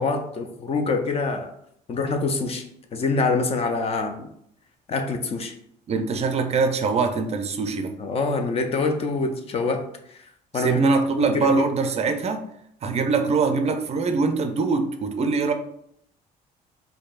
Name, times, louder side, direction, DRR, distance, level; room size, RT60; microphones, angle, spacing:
voice 1, 0.0-1.5 1.9-2.7 2.9-4.3 4.9-5.5 8.0-9.9 10.2-10.9 11.1-11.7, left 3 dB, 35° left, 6 dB, 0.4 m, -25 dB
voice 2, 5.9-7.9 10.5-12.4 12.8-15.5, right 4 dB, 40° right, 7 dB, 0.4 m, -23 dB
4.4 x 2.7 x 2.3 m, 0.71 s
cardioid pair, 110°, 17 cm